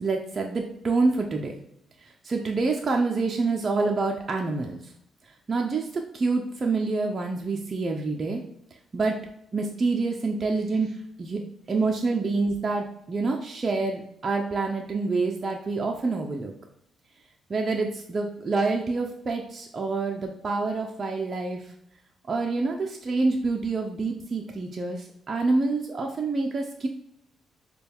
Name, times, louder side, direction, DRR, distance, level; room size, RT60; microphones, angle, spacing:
voice 1, 0.0-1.5 2.3-4.8 5.5-5.8 6.1-8.4 8.9-9.2 9.5-10.9 11.2-11.4 11.7-16.5 17.5-21.6 22.3-25.0 25.3-26.9, right 3 dB, 35° right, 1 dB, 0.6 m, -27 dB
6.6 x 2.3 x 3.5 m, 0.76 s
cardioid pair, 90°, 0 cm